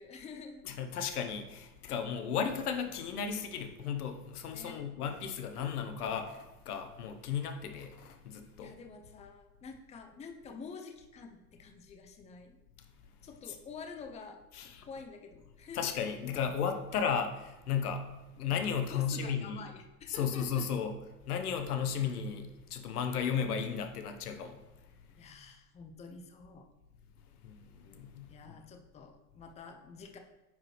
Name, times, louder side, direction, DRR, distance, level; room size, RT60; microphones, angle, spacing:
voice 1, 0.0-0.7 4.5-4.8 8.6-12.6 13.2-15.9 18.9-20.6 25.2-26.7 28.3-30.2, left 5 dB, 15° left, 5 dB, 0.6 m, -48 dB
voice 2, 0.7-8.8 14.5-14.9 15.7-18.1 18.3-19.6 20.1-20.9 21.3-24.6 27.4-28.3, left 7 dB, 75° left, 7 dB, 1.0 m, -34 dB
9.2 x 4.9 x 3.1 m, 1.0 s
hypercardioid pair, 85°, 45 cm